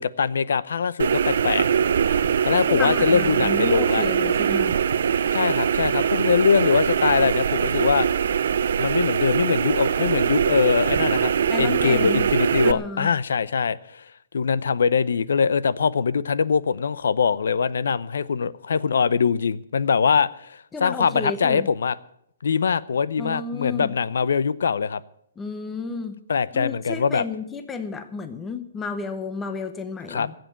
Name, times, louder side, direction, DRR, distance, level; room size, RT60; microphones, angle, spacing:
voice 1, 0.0-1.7 2.4-4.0 5.3-8.1 8.8-11.3 11.6-14.1 14.3-21.9 22.4-25.0 26.3-27.2 30.1-30.3, left 6 dB, 80° left, 18 dB, 0.7 m, -22 dB
sound 1, 1.0-12.7, right 7 dB, 60° right, 0.7 m, -22 dB
voice 2, 2.7-4.7 11.5-12.3 12.6-13.1 20.7-21.7 23.2-23.9 25.4-26.2 26.5-30.3, left 4 dB, 10° left, 9 dB, 0.7 m, -32 dB
15.5 x 7.8 x 9.1 m, 0.72 s
hypercardioid pair, 175°, 0 cm